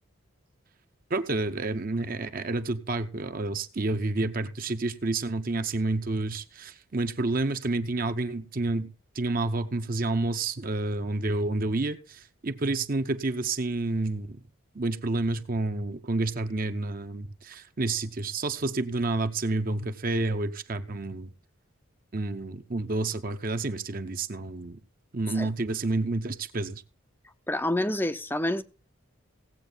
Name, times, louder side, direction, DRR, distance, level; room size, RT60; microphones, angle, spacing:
voice 1, 1.1-14.4 14.7-21.3 22.1-24.8 25.1-26.8, right 2 dB, 40° right, 0.7 m, -29 dB
voice 2, 27.5-28.6, left 1 dB, 10° left, 0.5 m, -27 dB
17.0 x 7.9 x 3.9 m
head